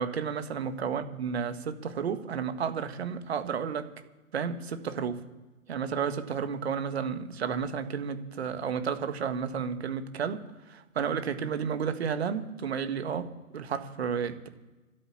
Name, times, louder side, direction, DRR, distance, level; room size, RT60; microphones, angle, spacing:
voice 1, 0.0-3.9 4.3-5.2 5.7-14.5, right 6 dB, 50° right, 9 dB, 1.7 m, -32 dB
13.0 x 8.3 x 9.9 m, 1.1 s
figure-of-eight pair, 140°, 42 cm